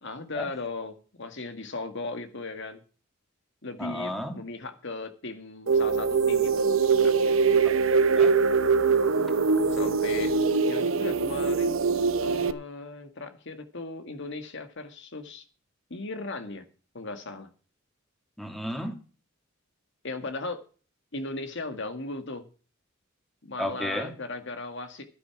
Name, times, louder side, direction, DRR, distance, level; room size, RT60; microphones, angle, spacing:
voice 1, 0.0-2.8 3.6-7.4 9.7-11.8 12.2-15.4 15.9-16.6 16.9-17.5 20.0-20.6 21.1-22.5 23.4-25.1, left 3 dB, 60° left, 7 dB, 1.9 m, -37 dB
voice 2, 3.8-4.3 7.6-8.3 18.4-19.0 23.6-24.1, equal, ahead, 4 dB, 2.5 m, -33 dB
sound 1, 5.7-12.5, right 5 dB, 70° right, 0.8 m, -23 dB
13.0 x 9.8 x 5.9 m, 0.38 s
head